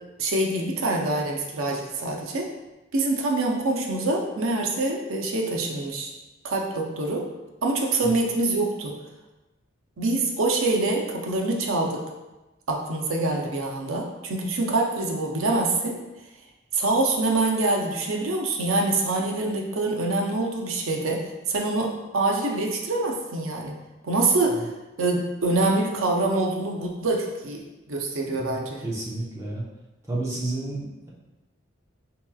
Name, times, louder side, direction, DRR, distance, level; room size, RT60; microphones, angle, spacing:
voice 1, 0.2-2.5 2.9-6.1 6.4-7.2 7.6-8.9 10.0-12.0 12.7-16.0 16.7-23.7 24.0-24.7 25.0-28.9, right 2 dB, 80° right, 0 dB, 0.6 m, -25 dB
voice 2, 28.2-29.6 30.1-31.1, right 2 dB, 15° right, -6 dB, 0.8 m, -31 dB
4.5 x 2.9 x 2.3 m, 1.1 s
head